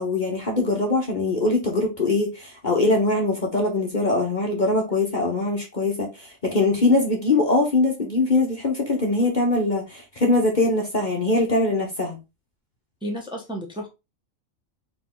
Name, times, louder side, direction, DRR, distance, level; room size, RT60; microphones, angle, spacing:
voice 1, 0.0-12.2, left 2 dB, 40° left, 1.0 m, -22 dB
voice 2, 13.0-13.9, equal, 5° right, 0.9 m, -32 dB
4.6 x 2.9 x 3.7 m
omnidirectional pair, 1.4 m